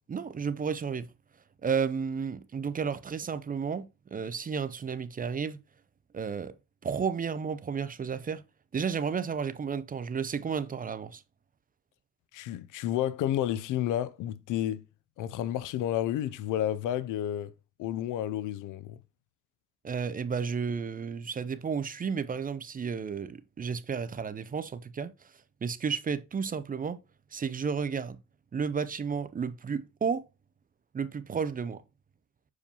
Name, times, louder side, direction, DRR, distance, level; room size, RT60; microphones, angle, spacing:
voice 1, 0.1-1.1 1.6-5.6 6.1-6.5 6.8-8.4 8.7-11.2 19.8-25.1 25.6-27.0 27.3-28.2 28.5-30.3 30.9-31.8, right 6 dB, 30° right, 0.5 m, -32 dB
voice 2, 12.3-14.8 15.2-17.5 17.8-19.0, left 12 dB, 85° left, 0.5 m, -31 dB
6.9 x 4.7 x 2.9 m
cardioid pair, 90°, 30 cm